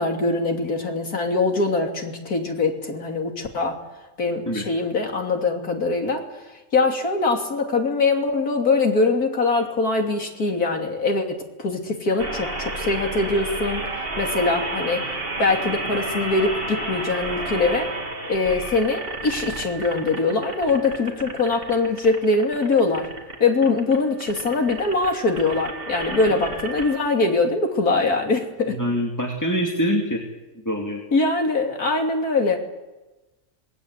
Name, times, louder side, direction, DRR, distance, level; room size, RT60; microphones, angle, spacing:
voice 1, 0.0-3.8 4.2-6.2 6.7-13.8 14.2-15.0 15.4-17.9 18.3-23.1 23.4-28.8 31.1-32.6, left 3 dB, 80° left, 2 dB, 3.5 m, -22 dB
sound 1, 12.2-27.0, right 2 dB, 40° right, 2.4 m, -32 dB
voice 2, 28.7-30.2 30.6-31.0, equal, 10° left, 0 dB, 2.5 m, -24 dB
27.0 x 19.5 x 8.3 m, 1.1 s
omnidirectional pair, 1.5 m